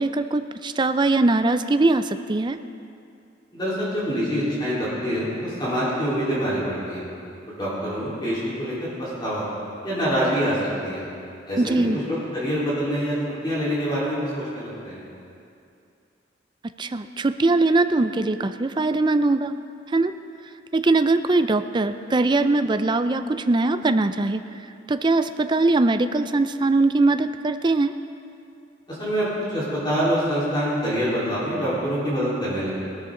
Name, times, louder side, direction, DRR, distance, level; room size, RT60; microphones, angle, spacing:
voice 1, 0.0-2.6 11.6-12.0 16.8-19.5 19.9-20.1 20.7-27.9, right 2 dB, 25° right, 10 dB, 0.4 m, -21 dB
voice 2, 3.5-7.0 7.5-9.4 9.8-10.6 10.8-11.0 11.5-13.1 13.4-15.0 28.9-32.7, equal, 25° left, -9 dB, 3.9 m, -25 dB
18.5 x 13.0 x 3.8 m, 2.5 s
head